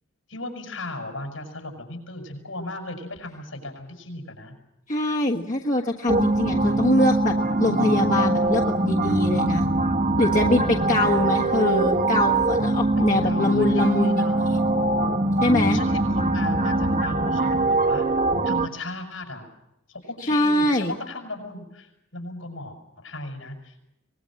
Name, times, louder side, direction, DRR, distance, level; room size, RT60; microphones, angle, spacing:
voice 1, 0.3-4.5 13.0-14.6 15.6-18.1 18.4-19.5 19.9-23.7, left 2 dB, 80° left, 4 dB, 6.8 m, -36 dB
voice 2, 4.9-9.7 10.2-14.6 15.4-15.8 20.3-20.9, left 2 dB, 40° left, 0 dB, 1.4 m, -23 dB
sound 1, 6.1-18.7, right 2 dB, 40° right, 1.4 m, -22 dB
24.0 x 21.0 x 7.7 m, 0.82 s
head